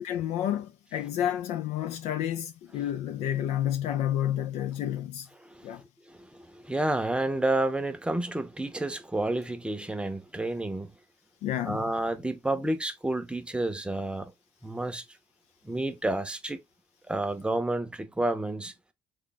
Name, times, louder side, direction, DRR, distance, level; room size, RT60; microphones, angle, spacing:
voice 1, 0.0-5.3 5.6-5.8 11.4-11.9, left 11 dB, 70° left, 0.4 m, -30 dB
voice 2, 5.4-5.8 6.1-10.9 11.6-14.3 14.6-15.0 15.6-16.6 17.1-18.7, right 2 dB, 10° right, 0.7 m, -30 dB
3.3 x 2.3 x 4.0 m
supercardioid pair, 75°, 11 cm